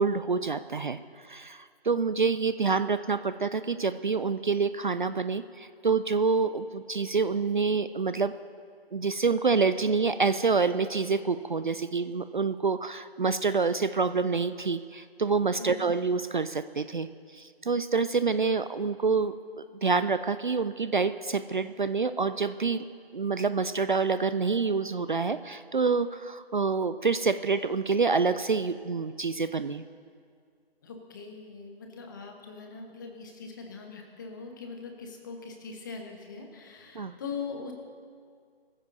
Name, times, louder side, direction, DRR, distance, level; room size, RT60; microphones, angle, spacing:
voice 1, 0.0-8.3 8.9-22.8 23.1-29.8 36.9-37.2, right 4 dB, 50° right, 13 dB, 0.5 m, -27 dB
voice 2, 30.8-37.7, left 5 dB, 20° left, 3 dB, 1.2 m, -41 dB
22.5 x 15.0 x 2.8 m, 2.1 s
figure-of-eight pair, 155°, 32 cm